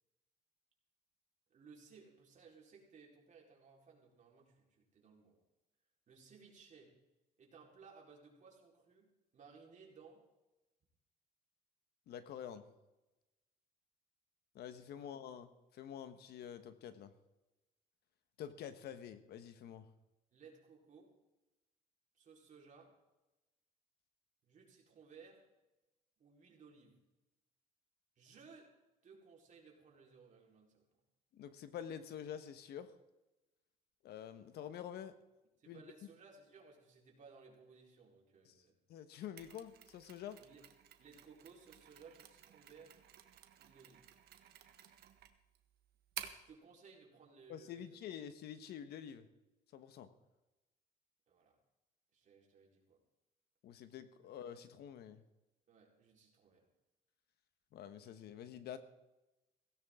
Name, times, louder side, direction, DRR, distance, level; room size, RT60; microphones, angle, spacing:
voice 1, 1.5-5.4 6.1-6.9 7.4-10.2 14.9-15.1 20.3-21.1 22.1-22.9 24.4-25.4 26.2-27.0 28.2-28.7 29.0-30.9 35.6-38.7 40.4-40.6 41.0-43.0 43.6-44.0 46.3-48.0 51.3-51.6 52.1-53.0 55.7-56.7, right 5 dB, 50° right, -1 dB, 4.4 m, -60 dB
voice 2, 12.1-12.7 14.5-17.1 18.4-19.9 31.3-32.9 34.0-35.2 35.7-35.8 38.4-38.5 38.9-40.4 47.5-49.3 49.7-50.1 53.6-55.2 57.7-58.8, left 9 dB, 75° left, 10 dB, 1.4 m, -48 dB
Mechanisms, 39.4-46.5, right 10 dB, 70° right, 1.5 m, -53 dB
17.0 x 16.5 x 3.8 m, 1.0 s
cardioid pair, 105°, 17 cm